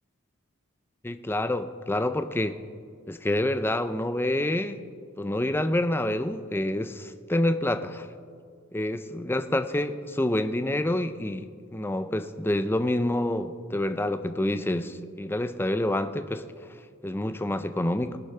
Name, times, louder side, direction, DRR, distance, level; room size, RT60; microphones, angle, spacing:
voice 1, 1.0-2.6 3.1-4.8 5.2-8.1 8.7-16.4 17.0-18.2, left 1 dB, 10° left, 10 dB, 0.5 m, -27 dB
20.5 x 6.9 x 5.6 m, 2.2 s
head